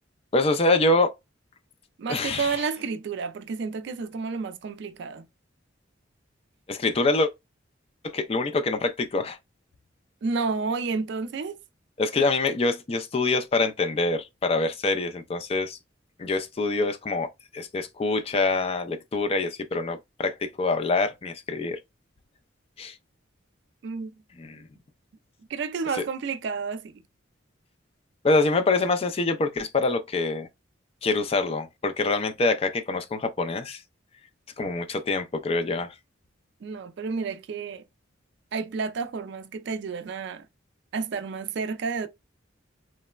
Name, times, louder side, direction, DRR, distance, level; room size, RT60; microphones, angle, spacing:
voice 1, 0.3-1.1 2.1-2.5 6.7-7.3 8.0-9.4 12.0-15.8 16.2-17.3 17.5-21.8 22.8-22.9 24.4-24.6 28.2-30.5 31.0-33.8 34.6-35.9, left 3 dB, 30° left, 0.3 m, -25 dB
voice 2, 2.0-5.3 10.2-11.6 23.8-24.1 24.5-24.6 25.5-27.0 36.6-37.8 38.5-40.5 40.9-42.1, right 4 dB, 60° right, 0.3 m, -30 dB
3.1 x 2.0 x 2.2 m
head